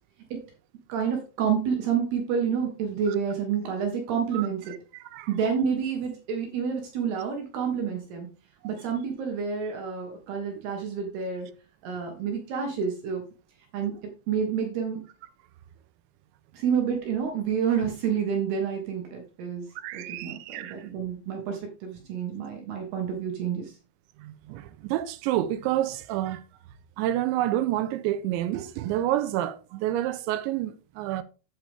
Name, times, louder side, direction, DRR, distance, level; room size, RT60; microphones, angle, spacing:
voice 1, 0.9-4.7 5.3-8.3 8.6-11.5 11.8-13.2 13.7-13.9 14.3-15.0 16.5-19.7 19.9-23.7, right 7 dB, 70° right, 3.3 m, -29 dB
voice 2, 19.8-20.8 24.2-26.4 27.0-31.2, right 13 dB, 90° right, 3.0 m, -28 dB
8.8 x 8.7 x 3.5 m
omnidirectional pair, 5.2 m